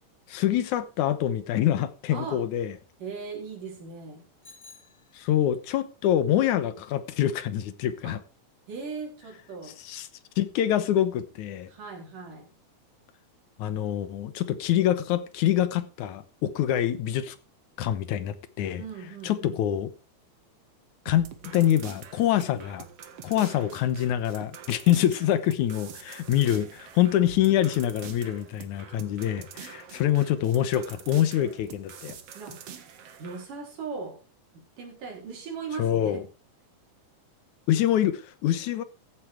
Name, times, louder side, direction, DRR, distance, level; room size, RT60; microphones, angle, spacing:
voice 1, 0.3-2.7 5.2-8.2 9.9-10.1 10.4-11.7 13.6-17.4 17.8-18.8 19.2-19.9 21.1-21.3 21.5-22.9 23.2-32.2 35.8-36.2 37.7-38.8, left 11 dB, 75° left, 2.4 m, -25 dB
voice 2, 2.1-2.4 3.0-4.3 8.0-8.2 8.7-9.8 11.7-12.5 18.8-19.6 32.4-32.6 33.2-34.2 34.5-36.3, right 5 dB, 90° right, 5.6 m, -38 dB
Bicycle bell, 4.4-5.7, left 3 dB, 30° left, 4.4 m, -53 dB
sound 1, 21.1-33.4, right 8 dB, 55° right, 2.2 m, -45 dB
15.0 x 8.5 x 4.6 m
omnidirectional pair, 3.6 m